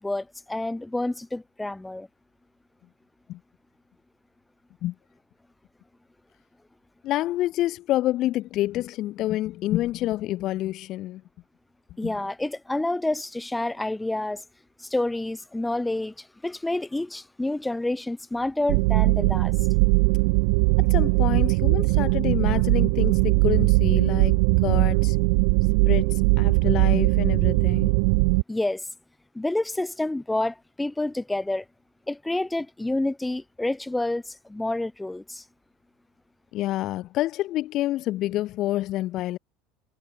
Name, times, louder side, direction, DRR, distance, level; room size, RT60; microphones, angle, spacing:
voice 1, 0.0-2.1 12.0-14.4 14.8-19.5 28.5-28.8 29.3-31.6 32.1-35.4, left 2 dB, 10° left, 0.7 m, -28 dB
voice 2, 7.0-11.2 12.0-12.1 20.8-25.2 25.9-27.9 36.5-39.4, left 15 dB, 55° left, 1.0 m, -28 dB
sound 1, 18.7-28.4, right 35 dB, 70° right, 0.6 m, -20 dB
supercardioid pair, 100°, 0 cm